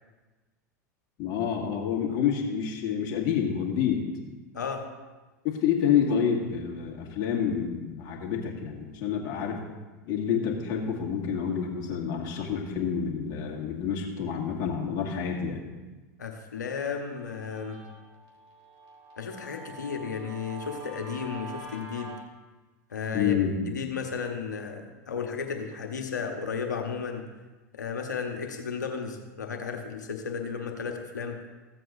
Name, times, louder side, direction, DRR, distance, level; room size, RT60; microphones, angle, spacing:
voice 1, 1.2-4.1 5.4-9.6 10.0-15.6 23.1-23.6, left 7 dB, 50° left, -1 dB, 1.9 m, -28 dB
voice 2, 4.5-4.9 16.2-17.8 19.2-22.1 22.9-23.3 23.7-27.2 27.7-31.4, left 6 dB, 90° left, 3 dB, 1.2 m, -34 dB
Guitar, 16.7-22.2, right 3 dB, 50° right, 2.5 m, -45 dB
15.0 x 7.5 x 2.7 m, 1.2 s
hypercardioid pair, 90°, 9 cm